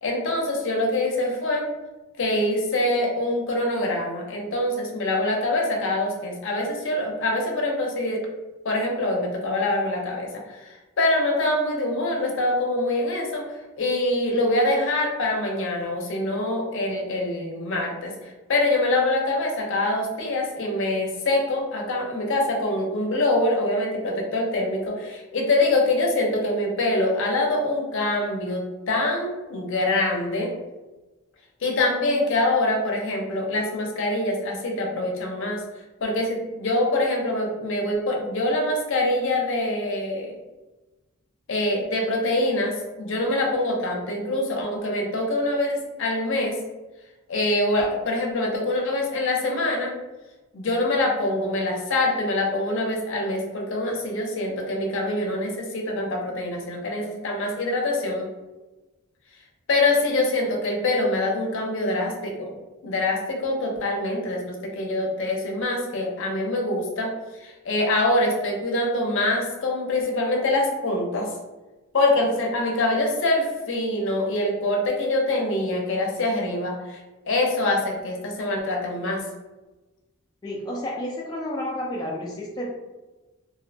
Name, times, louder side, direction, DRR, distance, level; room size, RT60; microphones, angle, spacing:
voice 1, 0.0-1.7 2.2-8.2 8.6-13.4 13.8-30.5 31.6-35.6 36.0-40.3 41.5-46.6 47.3-49.9 50.5-58.3 59.7-62.5 62.8-67.1 67.4-71.3 71.9-77.0 77.3-79.2, left 2 dB, 65° left, 0 dB, 0.6 m, -24 dB
voice 2, 80.4-82.7, left 1 dB, 20° left, -3 dB, 0.3 m, -31 dB
2.5 x 2.1 x 2.6 m, 1.1 s
head